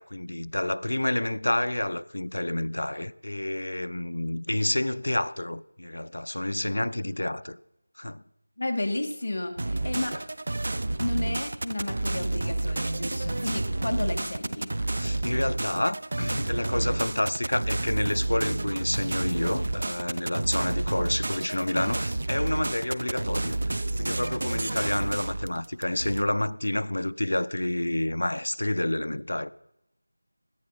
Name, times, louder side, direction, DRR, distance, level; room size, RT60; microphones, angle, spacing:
voice 1, 0.0-7.6 8.0-8.2 15.0-29.5, left 1 dB, 75° left, 0.6 m, -29 dB
voice 2, 8.6-10.2 11.0-14.7, left 1 dB, 45° left, 1.9 m, -32 dB
sound 1, 9.6-26.2, right 2 dB, 45° right, 0.7 m, -30 dB
17.0 x 11.0 x 5.6 m
figure-of-eight pair, 175°, 0 cm